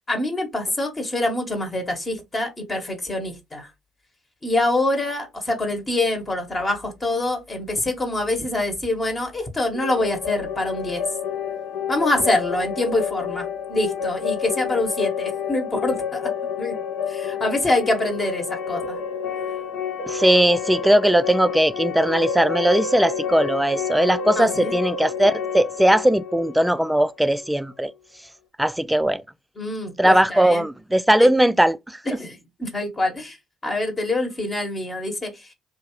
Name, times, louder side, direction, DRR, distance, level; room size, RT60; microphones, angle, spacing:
voice 1, 0.1-3.7 4.4-11.0 11.9-16.3 16.6-16.8 17.1-19.0 24.4-24.7 29.6-30.7 31.2-31.3 32.0-33.4 33.6-35.5, left 2 dB, 30° left, 1.1 m, -25 dB
sound 1, 9.7-27.5, left 6 dB, 70° left, 0.6 m, -29 dB
voice 2, 20.1-27.9 28.6-29.2 30.0-31.8, right 1 dB, 5° right, 0.3 m, -19 dB
2.7 x 2.3 x 3.0 m
hypercardioid pair, 55°, 0 cm